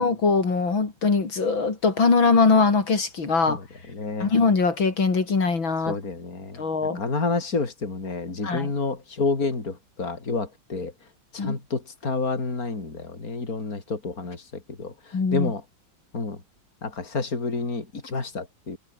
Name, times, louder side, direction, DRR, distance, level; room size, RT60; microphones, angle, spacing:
voice 1, 0.0-3.6 4.2-6.0 6.6-7.0 8.4-8.7 11.4-11.6 15.1-15.5, left 4 dB, 75° left, 4.4 m, -22 dB
voice 2, 3.9-4.3 5.9-6.6 6.9-10.9 11.3-14.4 14.8-14.9 15.3-15.6 16.1-16.4 16.8-18.8, left 3 dB, 45° left, 4.4 m, -29 dB
omnidirectional pair, 2.1 m